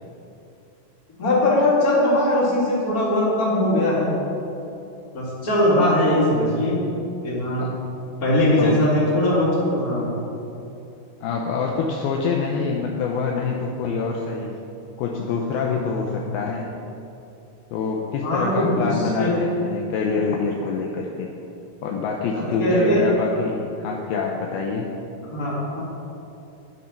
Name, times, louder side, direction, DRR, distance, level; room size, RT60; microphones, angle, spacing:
voice 1, 1.2-4.1 5.1-6.8 7.2-7.7 8.2-10.2 18.2-18.9 19.1-19.3 22.3-23.0 25.3-25.8, left 1 dB, 25° left, -7 dB, 3.4 m, -20 dB
voice 2, 11.2-14.6 15.0-16.7 17.7-21.3 21.8-24.9, left 5 dB, 75° left, 0 dB, 2.6 m, -26 dB
10.5 x 10.5 x 5.9 m, 2.8 s
omnidirectional pair, 4.7 m